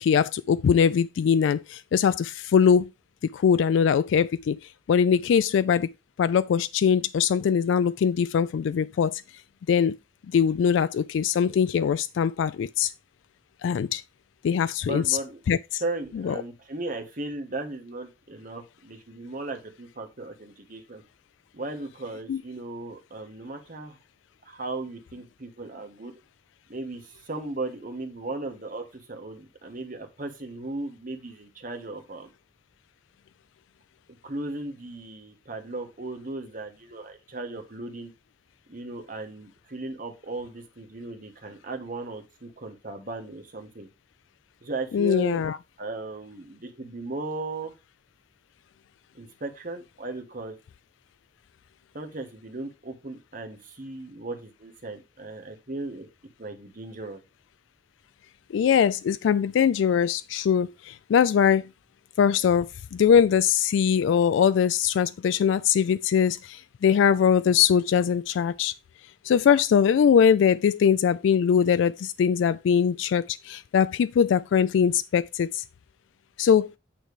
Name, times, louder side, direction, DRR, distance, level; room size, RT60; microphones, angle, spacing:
voice 1, 0.0-2.9 3.3-4.6 4.9-5.9 6.2-9.2 9.7-10.0 10.3-12.9 13.6-14.0 14.4-15.2 15.5-15.8 16.2-16.3 22.3-22.4 44.9-45.6 58.5-61.7 62.2-62.7 62.9-68.7 69.2-75.6 76.4-76.7, left 7 dB, 85° left, 0.3 m, -22 dB
voice 2, 14.9-15.4 15.8-21.0 21.5-24.0 24.4-26.1 26.7-32.3 34.2-38.1 38.7-43.9 44.6-45.4 45.8-47.7 49.1-50.5 51.9-56.1 56.4-57.2, right 2 dB, 45° right, 1.4 m, -36 dB
8.9 x 3.3 x 4.8 m
head